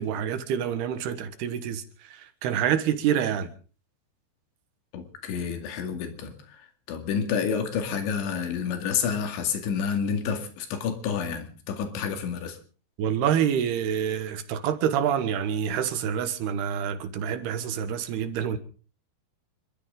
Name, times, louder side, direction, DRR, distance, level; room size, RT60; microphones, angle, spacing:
voice 1, 0.0-3.5 13.0-18.6, right 9 dB, 70° right, 3.3 m, -27 dB
voice 2, 4.9-6.3 6.9-12.6, left 6 dB, 85° left, 4.6 m, -29 dB
28.5 x 13.5 x 3.8 m
omnidirectional pair, 5.2 m